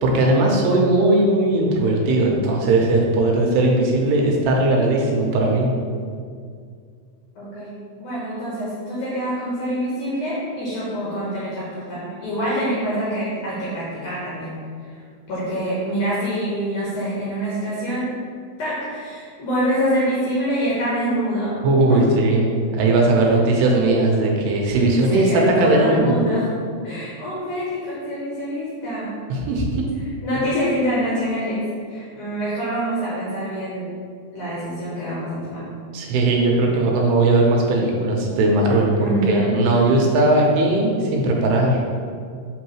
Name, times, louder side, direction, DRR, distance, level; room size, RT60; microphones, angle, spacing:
voice 1, 0.0-5.7 21.6-26.2 29.3-29.9 35.9-41.8, right 2 dB, 80° right, -1 dB, 2.7 m, -18 dB
voice 2, 7.4-15.0 15.3-18.1 18.6-21.6 21.9-22.3 24.9-26.5 26.8-29.2 30.0-33.9 34.3-35.7 39.0-39.6, equal, 70° left, -8 dB, 1.9 m, -25 dB
6.3 x 5.5 x 3.0 m, 2.2 s
omnidirectional pair, 4.9 m